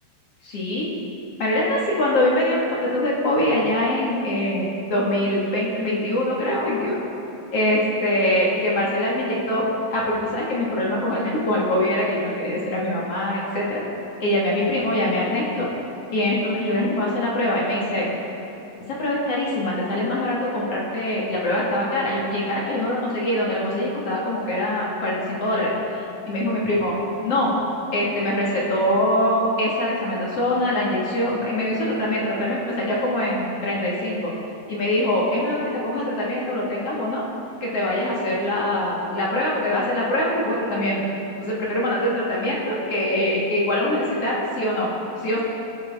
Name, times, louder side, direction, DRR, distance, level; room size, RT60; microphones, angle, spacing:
voice 1, 0.4-0.9 1.4-7.1 7.5-9.6 9.9-13.8 14.2-15.7 16.1-18.1 18.9-25.7 26.3-27.0 27.2-27.5 27.9-34.3 34.7-37.2 37.6-41.0 41.4-44.9 45.2-45.4, left 1 dB, 45° left, -5 dB, 2.5 m, -23 dB
24.5 x 9.9 x 3.7 m, 3.0 s
omnidirectional pair, 4.6 m